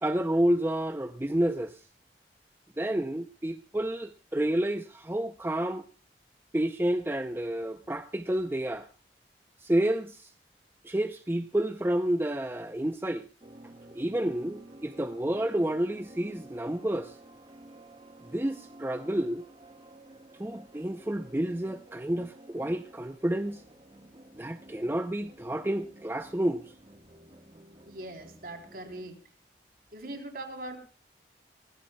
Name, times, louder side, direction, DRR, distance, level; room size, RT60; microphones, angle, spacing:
voice 1, 0.0-1.8 2.8-5.8 6.5-8.9 9.6-10.3 10.8-13.2 13.9-17.2 18.2-19.4 20.4-23.6 24.4-26.6, right 1 dB, 15° right, 0.6 m, -30 dB
sound 1, 13.4-29.1, right 1 dB, 30° right, 1.5 m, -52 dB
voice 2, 27.9-29.2 29.9-30.8, right 1 dB, 55° right, 3.5 m, -41 dB
21.5 x 17.0 x 2.3 m
head